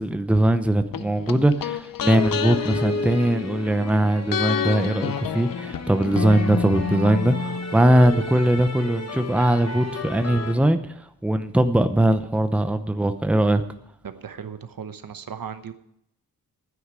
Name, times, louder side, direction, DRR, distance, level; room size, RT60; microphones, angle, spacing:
voice 1, 0.0-10.9 11.2-13.6, right 1 dB, 5° right, 9 dB, 0.7 m, -21 dB
sound 1, 0.9-3.9 4.3-8.1 8.4-8.5, left 7 dB, 65° left, 0.6 m, -29 dB
sound 2, 2.1-10.5, left 2 dB, 45° left, 1.4 m, -34 dB
voice 2, 14.0-15.7, right 7 dB, 65° right, 10 dB, 1.0 m, -36 dB
9.7 x 9.2 x 8.3 m, 0.76 s
wide cardioid pair, 130°, 37 cm